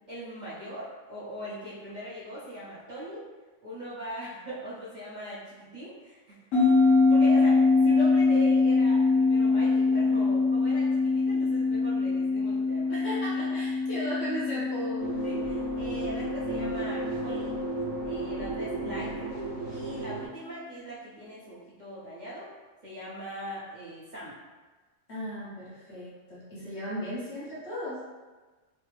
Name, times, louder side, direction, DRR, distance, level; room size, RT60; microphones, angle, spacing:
voice 1, 0.1-3.2 3.6-13.0 13.3-13.5 15.2-17.5 18.0-19.4 19.7-22.5 22.8-24.3 26.6-26.7, equal, 40° right, -10 dB, 0.8 m, -40 dB
sound 1, 6.5-19.3, left 3 dB, 80° left, 1.2 m, -24 dB
voice 2, 12.9-15.0 25.1-28.0, equal, 55° left, -9 dB, 1.3 m, -36 dB
sound 2, 15.0-20.3, right 3 dB, 85° right, 1.1 m, -34 dB
3.2 x 2.0 x 3.1 m, 1.3 s
omnidirectional pair, 1.3 m